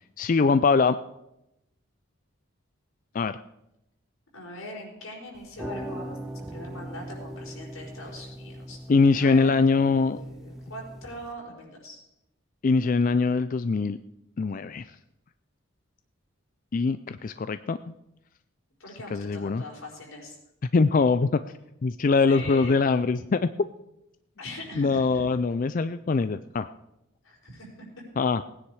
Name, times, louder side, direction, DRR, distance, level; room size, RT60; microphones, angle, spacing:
voice 1, 0.2-1.0 3.1-3.4 8.9-10.2 12.6-14.0 14.4-14.8 16.7-17.9 19.1-19.6 20.7-21.4 21.8-23.5 24.8-26.7 28.2-28.4, left 4 dB, 40° left, 12 dB, 0.4 m, -22 dB
voice 2, 4.3-12.0 18.8-20.4 22.3-22.8 24.4-25.2 27.2-27.7, left 1 dB, 85° left, -1 dB, 4.6 m, -41 dB
sound 1, 5.3-11.3, equal, 5° right, 1.1 m, -40 dB
18.5 x 9.9 x 4.8 m, 0.87 s
head